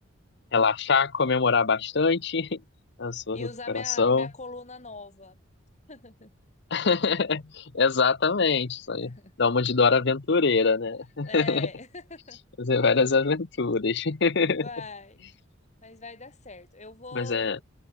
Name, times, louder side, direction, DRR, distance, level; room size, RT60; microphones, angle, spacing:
voice 1, 0.5-2.6 3.0-4.3 6.7-11.7 12.6-14.7 17.1-17.6, left 4 dB, 65° left, 0.9 m, -24 dB
voice 2, 3.3-5.4 5.9-6.3 9.0-9.3 11.3-12.4 14.5-15.2 15.8-17.6, left 3 dB, 40° left, 5.5 m, -42 dB
head